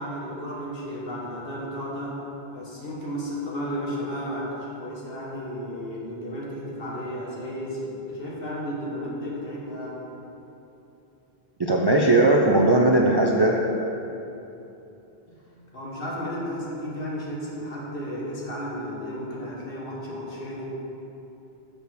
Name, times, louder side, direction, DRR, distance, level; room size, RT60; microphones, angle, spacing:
voice 1, 0.0-2.2 2.5-10.0 15.3-20.6, equal, 60° left, -5 dB, 1.7 m, -33 dB
voice 2, 11.6-13.6, right 2 dB, 35° right, -1 dB, 0.4 m, -18 dB
6.8 x 5.3 x 6.3 m, 2.9 s
omnidirectional pair, 1.1 m